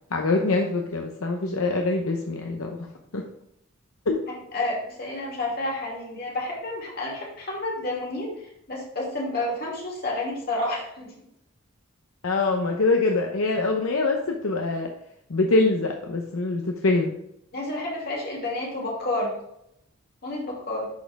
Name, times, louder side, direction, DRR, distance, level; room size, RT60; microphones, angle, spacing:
voice 1, 0.1-2.9 3.1-3.2 4.1-4.2 12.2-14.9 15.3-17.2, left 3 dB, 75° left, 2 dB, 0.8 m, -24 dB
voice 2, 4.3-11.1 17.5-19.3 20.2-20.9, left 2 dB, 45° left, -3 dB, 2.6 m, -30 dB
10.5 x 4.4 x 3.5 m, 0.77 s
head